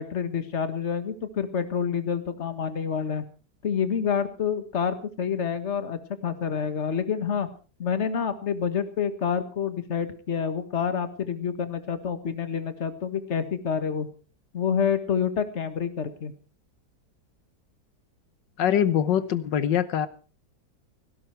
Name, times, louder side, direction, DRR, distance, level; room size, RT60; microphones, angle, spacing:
voice 1, 0.0-3.2 3.6-7.5 7.8-14.1 14.5-16.3, left 7 dB, 40° left, 1.8 m, -28 dB
voice 2, 18.6-20.1, left 9 dB, 90° left, 1.7 m, -23 dB
17.0 x 17.0 x 4.6 m
omnidirectional pair, 1.9 m